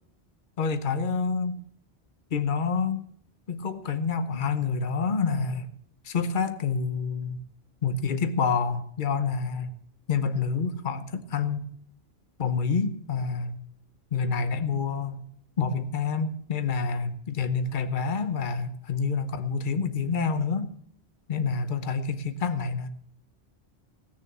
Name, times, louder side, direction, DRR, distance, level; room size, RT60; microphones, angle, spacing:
voice 1, 0.6-1.6 2.3-3.0 3.5-5.7 6.0-7.4 7.8-9.7 10.1-11.7 12.4-13.6 14.1-15.2 15.6-20.7 21.3-22.9, left 5 dB, 55° left, 1.1 m, -28 dB
17.0 x 6.8 x 7.4 m
omnidirectional pair, 1.1 m